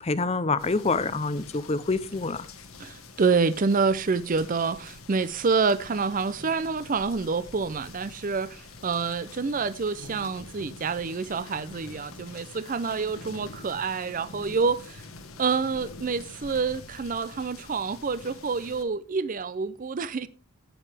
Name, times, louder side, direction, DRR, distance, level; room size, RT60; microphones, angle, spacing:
voice 1, 0.0-2.5, left 3 dB, 30° left, 0.6 m, -26 dB
sound 1, 0.6-18.8, left 3 dB, 75° left, 1.6 m, -46 dB
voice 2, 2.8-15.0 15.4-20.3, right 4 dB, 40° right, 0.5 m, -27 dB
17.0 x 6.7 x 3.4 m
head